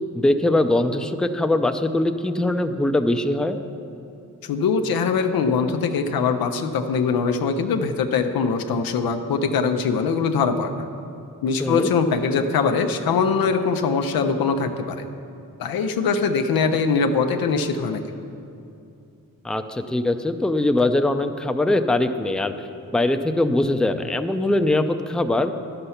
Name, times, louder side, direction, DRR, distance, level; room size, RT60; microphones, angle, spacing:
voice 1, 0.1-3.6 11.6-11.9 19.4-22.5 22.9-25.5, left 2 dB, ahead, 8 dB, 0.5 m, -21 dB
voice 2, 4.5-10.9 11.4-15.1 15.6-18.0, left 5 dB, 90° left, 6 dB, 0.7 m, -22 dB
11.0 x 6.7 x 5.7 m, 2.6 s
cardioid pair, 65°, 35 cm